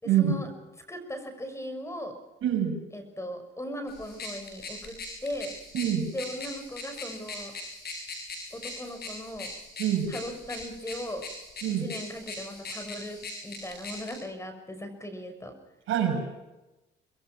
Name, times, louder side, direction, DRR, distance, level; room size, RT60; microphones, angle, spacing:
voice 1, 0.0-0.5 0.9-2.1 2.9-5.0 5.2-5.6 6.1-7.5 8.5-9.5 10.1-11.2 11.7-15.5, equal, 15° left, 8 dB, 6.2 m, -38 dB
voice 2, 2.4-2.8 5.7-6.1 9.8-10.1 11.6-11.9 15.9-16.2, right 9 dB, 85° right, 3 dB, 6.6 m, -25 dB
sound 1, 3.9-14.2, left 2 dB, 55° left, 7.2 m, -41 dB
25.0 x 21.5 x 6.2 m, 1.0 s
cardioid pair, 90°, 20 cm